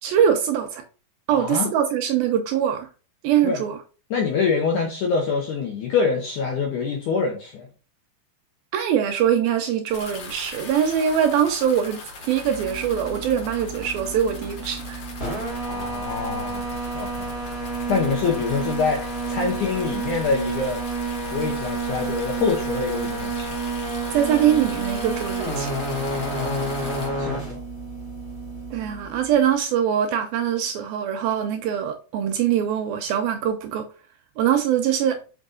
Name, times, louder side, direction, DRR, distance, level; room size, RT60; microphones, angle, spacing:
voice 1, 0.0-0.8 1.3-2.9 3.2-3.8 8.7-15.0 24.1-25.7 28.7-33.9 34.4-35.2, right 9 dB, 75° right, 2.3 m, -23 dB
voice 2, 1.3-1.7 3.4-3.6 4.1-7.7 15.6-17.3 17.9-20.8 21.3-23.5 26.1-27.6, left 5 dB, 70° left, 1.9 m, -25 dB
sound 1, 9.9-27.1, left 3 dB, 55° left, 1.5 m, -41 dB
sound 2, 12.3-29.5, right 2 dB, 20° left, 2.2 m, -30 dB
6.5 x 5.4 x 3.7 m
omnidirectional pair, 4.8 m